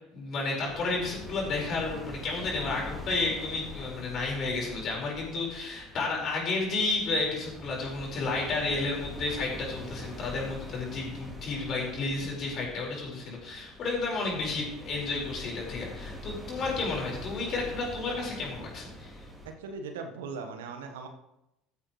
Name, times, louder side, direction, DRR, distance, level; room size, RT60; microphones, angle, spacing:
voice 1, 0.1-19.1, left 3 dB, 45° left, -1 dB, 4.9 m, -32 dB
sound 1, 0.6-19.5, left 1 dB, 5° right, 3.6 m, -44 dB
voice 2, 19.4-21.1, right 4 dB, 70° right, 5 dB, 1.4 m, -39 dB
14.5 x 10.0 x 3.2 m, 0.89 s
figure-of-eight pair, 70°, 0 cm